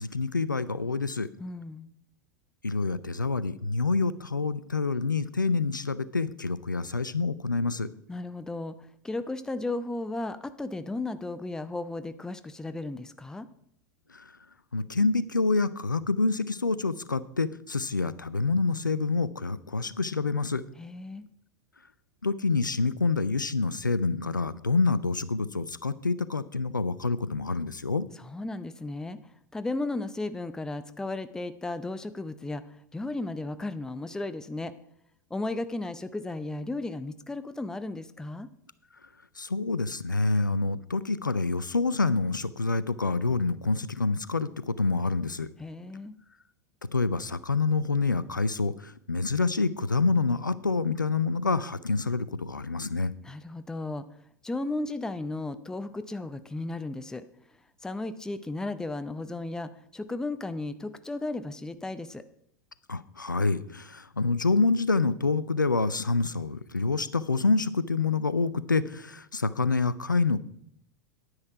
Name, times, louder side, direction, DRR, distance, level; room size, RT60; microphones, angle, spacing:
voice 1, 0.0-1.3 2.6-7.9 14.1-14.2 14.7-20.6 22.2-28.1 39.4-45.5 46.9-53.1 62.9-70.4, left 3 dB, 85° left, 17 dB, 0.5 m, -27 dB
voice 2, 1.4-1.9 8.1-13.5 20.8-21.3 28.1-29.2 29.5-32.6 32.9-34.7 35.3-38.5 45.6-46.1 53.2-54.1 54.4-57.2 57.8-62.2, left 2 dB, 5° left, 12 dB, 0.6 m, -35 dB
9.7 x 9.7 x 4.7 m, 0.72 s
figure-of-eight pair, 85°, 10 cm